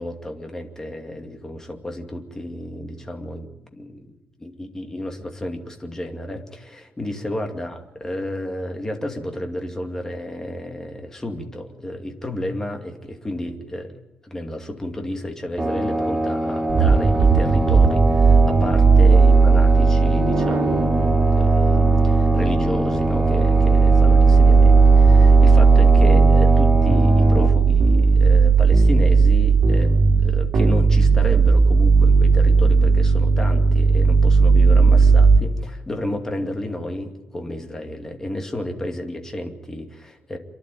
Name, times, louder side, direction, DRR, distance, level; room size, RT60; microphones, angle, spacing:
voice 1, 0.0-13.9 14.2-29.9 30.2-40.4, left 1 dB, 15° left, 3 dB, 2.4 m, -32 dB
sound 1, 15.6-27.5, right 1 dB, 20° right, 4.1 m, -24 dB
sound 2, 16.7-35.4, right 4 dB, 85° right, 2.5 m, -15 dB
28.0 x 11.5 x 9.2 m, 1.0 s
wide cardioid pair, 170°, 4 cm